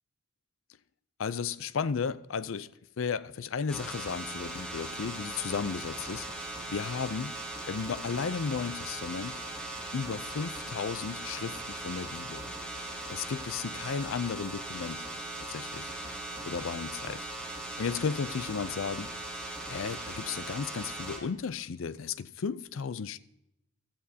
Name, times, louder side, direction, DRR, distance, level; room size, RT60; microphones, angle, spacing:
voice 1, 1.2-2.7 3.0-6.3 6.7-7.3 7.7-9.4 9.9-12.5 13.1-15.1 15.4-15.9 16.5-17.3 17.8-19.1 19.7-23.2, left 6 dB, 70° left, 0.5 m, -34 dB
sound 1, 3.7-21.2, right 2 dB, 5° left, 2.4 m, -39 dB
16.0 x 13.0 x 2.8 m
head